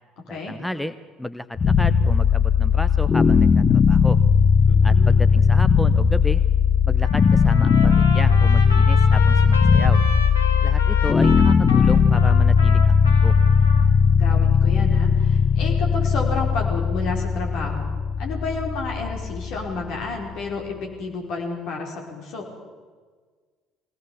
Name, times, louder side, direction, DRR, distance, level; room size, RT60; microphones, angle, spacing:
voice 1, 0.3-4.2 4.8-6.4 6.9-10.0 10.6-13.4, left 1 dB, 5° left, 12 dB, 0.7 m, -32 dB
sound 1, 1.6-20.6, left 6 dB, 35° left, 1.0 m, -18 dB
voice 2, 4.7-5.2 13.8-22.5, left 3 dB, 60° left, 0 dB, 4.9 m, -31 dB
Trumpet, 7.0-13.9, left 4 dB, 85° left, 1.9 m, -31 dB
22.5 x 18.0 x 7.2 m, 1.5 s
figure-of-eight pair, 55°, 0 cm